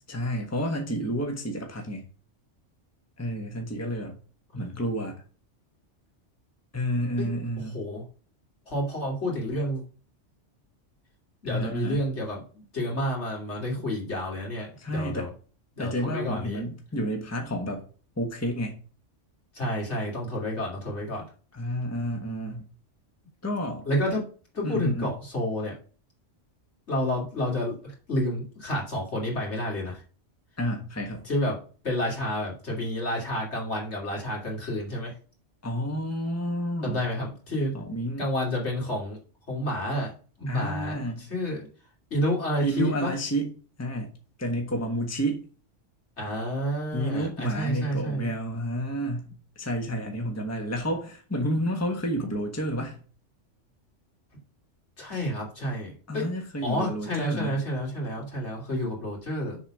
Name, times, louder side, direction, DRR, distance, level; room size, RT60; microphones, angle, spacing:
voice 1, 0.1-2.0 3.2-4.1 4.5-5.2 6.7-7.8 11.5-12.0 14.8-15.3 15.8-17.8 18.2-18.8 21.5-22.7 23.4-23.9 24.6-25.1 30.6-31.3 35.6-37.0 37.7-38.2 40.5-41.3 42.6-43.5 43.8-44.1 44.4-45.4 46.9-53.0 56.1-57.6, equal, 15° left, 3 dB, 1.3 m, -30 dB
voice 2, 7.6-8.0 8.7-9.8 11.4-15.3 15.8-16.6 19.5-21.2 23.9-24.2 24.5-25.8 26.9-30.0 31.2-31.6 31.8-35.1 36.8-37.8 38.2-39.2 39.5-40.1 40.4-41.7 42.1-43.1 46.2-48.3 55.0-56.3 56.6-59.6, equal, 65° left, -2 dB, 3.2 m, -30 dB
7.0 x 4.1 x 6.1 m, 0.38 s
omnidirectional pair, 1.2 m